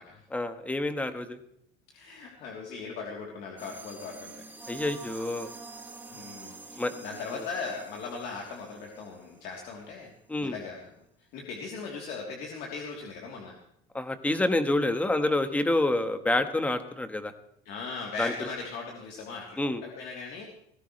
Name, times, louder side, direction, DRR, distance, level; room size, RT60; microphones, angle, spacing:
voice 1, 0.3-1.4 4.7-5.5 6.8-6.9 10.3-10.6 13.9-17.3 18.2-18.3 19.6-19.8, left 2 dB, 10° left, 9 dB, 1.4 m, -27 dB
voice 2, 1.9-4.4 6.1-10.1 10.4-10.9 11.3-13.5 17.6-20.4, left 4 dB, 70° left, -2 dB, 3.3 m, -39 dB
sound 1, 3.6-9.9, right 4 dB, 10° right, 2.0 m, -47 dB
20.0 x 16.0 x 3.3 m, 0.73 s
cardioid pair, 150°, 17 cm